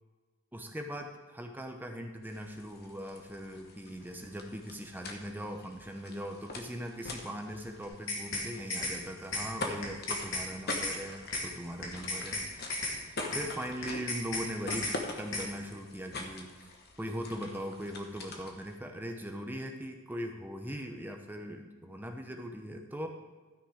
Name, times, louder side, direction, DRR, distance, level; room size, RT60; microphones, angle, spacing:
voice 1, 0.5-13.0 13.3-14.9 15.2-16.5 17.0-23.1, equal, 10° right, 3 dB, 0.7 m, -40 dB
sound 1, 2.2-18.7, left 2 dB, 45° left, 1.1 m, -44 dB
sound 2, 7.8-8.4 8.7-8.9 9.3-9.4 9.8-10.4 10.7-10.9 11.3-11.4 11.8-12.4 12.7-12.9 13.3-13.4 13.8-14.4 14.7-14.9 15.3-15.4, left 2 dB, 60° left, 2.5 m, -34 dB
12.5 x 6.2 x 4.8 m, 1.3 s
head